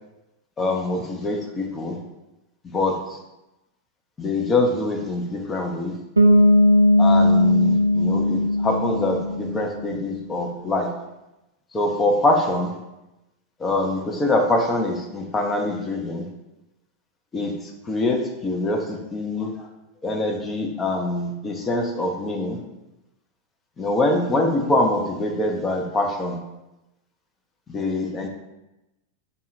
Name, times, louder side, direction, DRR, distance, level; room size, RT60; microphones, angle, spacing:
voice 1, 0.6-2.0 2.6-3.2 4.2-6.0 7.0-10.9 11.7-12.8 13.6-16.3 17.3-19.7 20.0-22.6 23.8-26.4 27.7-28.3, left 2 dB, 20° left, 2 dB, 0.6 m, -24 dB
Bass guitar, 6.2-9.9, left 1 dB, 80° right, 0.4 m, -18 dB
3.6 x 2.1 x 4.0 m, 0.96 s
figure-of-eight pair, 90°, 0 cm